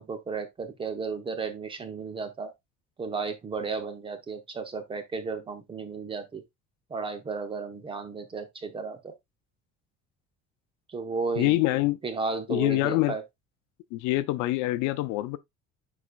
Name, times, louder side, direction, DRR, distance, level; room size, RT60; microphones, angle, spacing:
voice 1, 0.0-2.5 3.0-6.4 6.9-9.1 10.9-11.6 12.0-13.2, right 4 dB, 20° right, 0.9 m, -34 dB
voice 2, 11.4-12.0 12.5-13.1 13.9-15.4, left 18 dB, 85° left, 0.7 m, -25 dB
9.8 x 4.2 x 2.4 m
cardioid pair, 175°, 29 cm